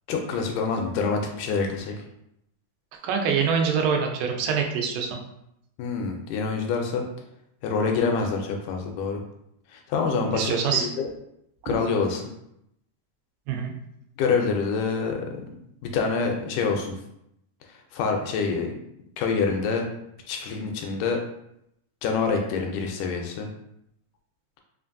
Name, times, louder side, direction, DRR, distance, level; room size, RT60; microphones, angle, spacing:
voice 1, 0.1-1.9 5.8-7.0 7.6-9.2 9.7-10.5 10.8-11.1 11.7-12.3 14.2-15.4 15.9-17.0 17.9-18.7 19.2-19.9 20.3-21.2 22.0-23.5, left 5 dB, 80° left, 3 dB, 2.0 m, -26 dB
voice 2, 3.0-5.2 10.1-10.9 13.5-13.7, right 6 dB, 90° right, 2 dB, 2.3 m, -25 dB
5.1 x 2.5 x 2.5 m, 0.79 s
omnidirectional pair, 3.8 m